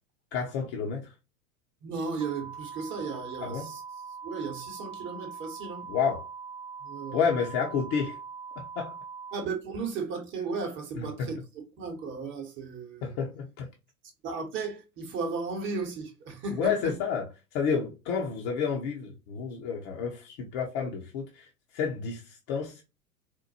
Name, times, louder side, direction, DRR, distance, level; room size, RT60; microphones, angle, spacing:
voice 1, 0.3-1.1 3.4-3.7 5.9-6.3 7.1-8.2 8.8-9.0 11.2-11.3 13.0-13.7 16.6-17.2 17.5-21.4 21.7-22.2 22.5-22.8, left 6 dB, 35° left, 0.9 m, -30 dB
voice 2, 1.8-3.8 4.2-5.9 6.8-7.2 9.3-11.4 11.8-13.1 14.2-16.9, right 4 dB, 25° right, 1.0 m, -35 dB
sound 1, 2.2-9.4, right 5 dB, 85° left, 1.7 m, -42 dB
4.4 x 2.2 x 2.7 m
figure-of-eight pair, 95°, 46 cm